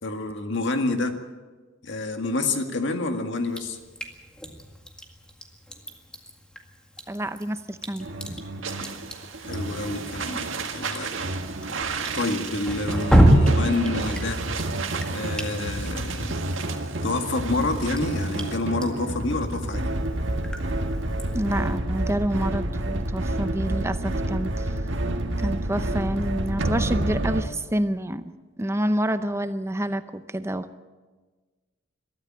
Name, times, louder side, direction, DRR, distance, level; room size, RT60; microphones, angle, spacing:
voice 1, 0.0-1.1 1.8-3.8 9.4-11.1 12.1-14.4 15.1-16.5 17.0-19.9, left 2 dB, 65° left, 6 dB, 1.9 m, -28 dB
Drip, 3.5-21.8, right 1 dB, 5° left, 1.9 m, -29 dB
voice 2, 7.1-8.4 21.3-24.8 25.4-28.2 28.6-30.0 30.3-30.7, right 1 dB, 15° right, 11 dB, 0.7 m, -28 dB
sound 1, 8.0-27.4, right 1 dB, 70° right, 1.7 m, -29 dB
sound 2, 8.6-18.6, right 5 dB, 85° right, 1.9 m, -35 dB
22.0 x 13.5 x 8.7 m, 1.3 s
head